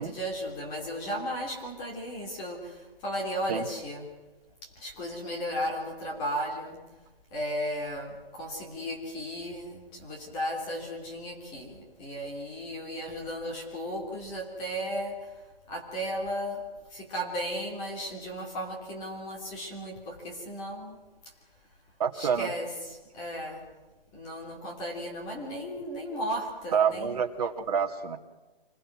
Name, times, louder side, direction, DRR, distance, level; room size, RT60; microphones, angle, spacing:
voice 1, 0.0-4.1 4.8-6.8 7.3-15.2 15.7-16.6 16.9-21.0 22.1-23.6 24.1-27.2, equal, 15° left, -1 dB, 3.1 m, -35 dB
voice 2, 22.0-22.5 26.7-28.2, right 7 dB, 40° right, 3 dB, 2.4 m, -27 dB
26.0 x 22.5 x 6.2 m, 1.2 s
hypercardioid pair, 165°, 30 cm